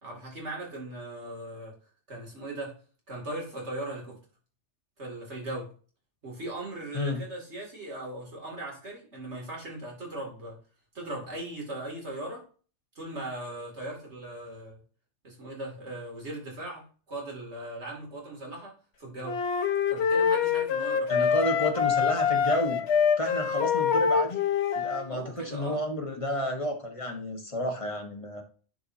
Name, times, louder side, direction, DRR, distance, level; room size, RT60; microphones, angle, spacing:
voice 1, 0.0-1.7 2.1-2.7 3.1-4.2 5.0-5.7 6.2-10.6 10.9-12.4 12.9-14.8 15.2-19.4 19.9-21.3 25.1-25.8, right 1 dB, 70° right, -2 dB, 2.9 m, -39 dB
sound 1, 19.2-25.1, left 6 dB, 65° left, 1.1 m, -25 dB
voice 2, 21.1-22.8 23.2-24.4 24.8-28.4, left 1 dB, 30° left, 3 dB, 1.4 m, -31 dB
10.0 x 4.7 x 2.7 m, 0.38 s
omnidirectional pair, 1.2 m